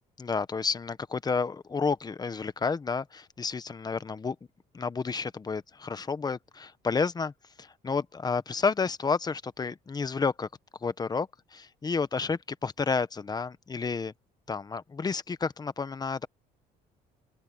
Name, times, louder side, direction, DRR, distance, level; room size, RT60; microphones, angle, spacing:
voice 1, 0.2-4.4 4.7-7.3 7.6-10.5 10.8-14.1 14.5-16.3, left 5 dB, 25° left, 1.1 m, -30 dB
open air
cardioid pair, 110°, 17 cm